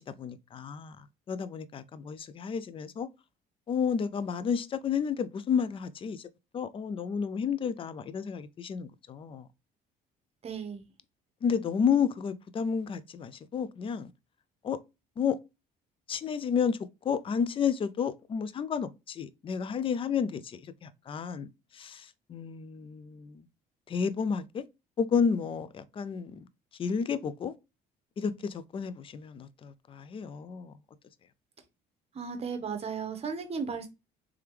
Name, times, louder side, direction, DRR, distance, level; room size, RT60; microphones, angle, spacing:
voice 1, 0.0-3.1 3.7-6.3 6.5-9.5 11.4-14.1 14.6-14.8 15.2-15.4 16.1-16.8 17.0-21.5 21.7-23.4 23.9-24.6 25.0-26.4 26.8-27.5 28.2-30.7, left 6 dB, 30° left, 0.4 m, -31 dB
voice 2, 10.4-10.9 32.1-33.9, right 5 dB, 35° right, 0.9 m, -35 dB
3.4 x 3.4 x 3.1 m
cardioid pair, 110°, 17 cm